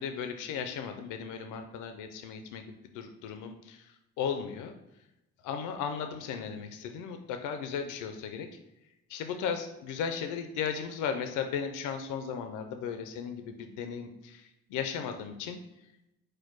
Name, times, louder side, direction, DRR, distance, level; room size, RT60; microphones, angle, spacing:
voice 1, 0.0-4.7 5.4-8.5 9.1-15.6, left 7 dB, 90° left, 6 dB, 0.5 m, -36 dB
4.4 x 2.2 x 4.5 m, 0.92 s
cardioid pair, 90°, 30 cm